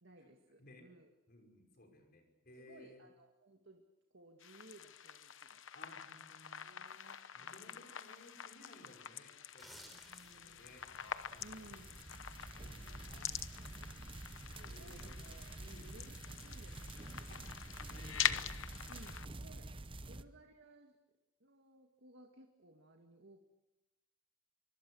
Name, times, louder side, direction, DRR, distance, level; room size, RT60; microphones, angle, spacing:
voice 1, 0.0-1.1 2.5-3.8 4.1-5.6 5.9-6.1 6.5-7.8 9.9-10.8 11.4-12.1 12.6-13.4 14.6-17.5 18.9-19.8 20.0-21.0 21.4-23.4, right 2 dB, 60° right, 3 dB, 2.0 m, -60 dB
voice 2, 0.6-0.9 1.3-3.0 5.7-6.7 7.3-9.8 10.2-10.9 11.3-11.8 12.6-14.1 14.6-15.2 15.6-16.0 17.3-17.5 17.9-18.5 20.0-20.2, left 1 dB, 50° left, 3 dB, 5.5 m, -59 dB
sound 1, 4.4-19.3, left 9 dB, 70° left, 1.0 m, -45 dB
sound 2, 9.5-10.6 11.0-11.2, equal, ahead, 3.9 m, -55 dB
sound 3, 10.4-20.2, right 2 dB, 25° right, 0.8 m, -49 dB
25.0 x 24.5 x 6.3 m, 0.98 s
head